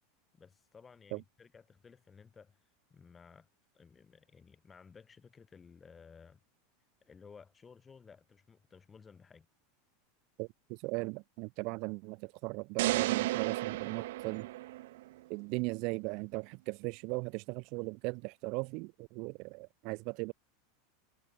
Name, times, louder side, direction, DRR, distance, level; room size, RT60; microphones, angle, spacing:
voice 1, 0.3-2.6 2.9-3.5 3.7-6.4 7.0-9.5, left 5 dB, 10° left, 7.0 m, -56 dB
voice 2, 10.4-14.5 15.3-20.3, right 29 dB, 40° right, 1.9 m, -38 dB
sound 1, 12.8-15.1, right 17 dB, 65° right, 1.6 m, -33 dB
supercardioid pair, 175°, 0 cm